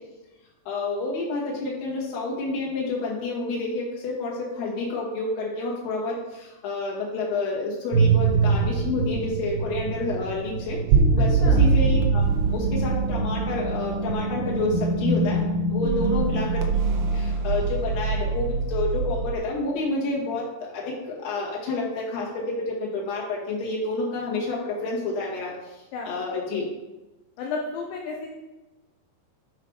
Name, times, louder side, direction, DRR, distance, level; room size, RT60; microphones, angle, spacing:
voice 1, 0.6-10.8 11.1-12.2 12.5-15.4 15.7-16.6 17.1-20.4 20.7-26.6, left 3 dB, 55° left, -4 dB, 3.4 m, -29 dB
sound 1, 7.9-19.3, right 4 dB, 75° right, 2.5 m, -23 dB
voice 2, 15.8-16.2 25.9-26.1 27.4-28.3, left 4 dB, 80° left, 0 dB, 2.9 m, -32 dB
7.9 x 5.7 x 4.9 m, 1.0 s
omnidirectional pair, 5.4 m